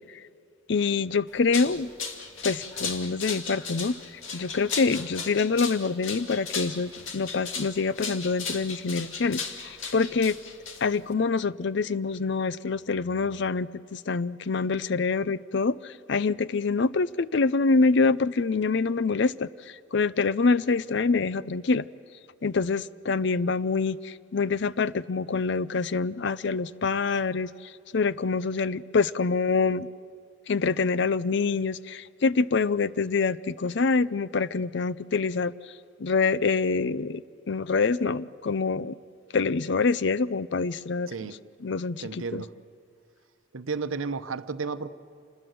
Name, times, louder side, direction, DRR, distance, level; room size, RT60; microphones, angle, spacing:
voice 1, 0.7-1.9 2.4-3.9 4.3-10.4 10.8-19.5 19.9-21.9 22.4-27.5 27.9-29.9 30.5-35.5 36.0-37.2 37.5-38.9 39.3-41.3 41.6-42.4, left 4 dB, 60° left, 0.5 m, -26 dB
sound 1, 1.3-11.1, left 5 dB, 75° left, 2.1 m, -36 dB
voice 2, 41.1-41.4 42.0-42.6 43.5-44.9, right 4 dB, 90° right, 0.9 m, -33 dB
28.0 x 20.5 x 7.7 m
head